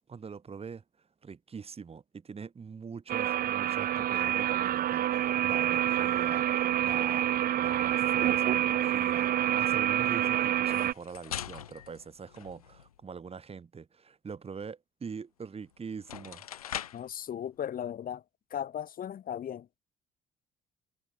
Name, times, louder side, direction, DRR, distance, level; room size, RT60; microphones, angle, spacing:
voice 1, 0.1-0.8 1.2-16.4, right 5 dB, 35° right, 2.0 m, -43 dB
sound 1, 3.1-10.9, right 12 dB, 55° right, 1.1 m, -27 dB
sound 2, 10.6-13.0 15.4-15.5 15.9-17.1, left 10 dB, 90° left, 1.8 m, -41 dB
voice 2, 16.9-18.2 18.5-19.8, left 9 dB, 50° left, 3.2 m, -37 dB
hypercardioid pair, 55°, 18 cm